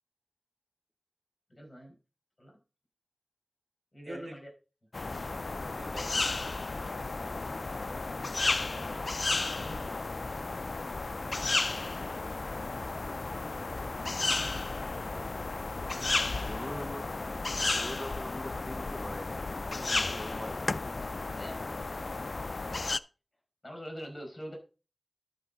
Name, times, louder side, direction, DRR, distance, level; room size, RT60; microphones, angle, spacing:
voice 1, 1.5-1.9 2.4-2.6 3.9-4.5 8.7-9.2 9.6-10.3 14.8-15.3 16.6-16.9 17.9-18.0 21.3-21.8 23.6-24.6, equal, 40° left, 5.2 m, -45 dB
sound 1, 4.9-23.0, left 3 dB, 70° left, 0.3 m, -33 dB
voice 2, 5.7-7.5, right 2 dB, 85° right, 1.7 m, -49 dB
voice 3, 16.4-17.0 17.6-20.7, equal, 10° left, 0.6 m, -42 dB
12.5 x 5.3 x 4.0 m
wide cardioid pair, 60°, 0 cm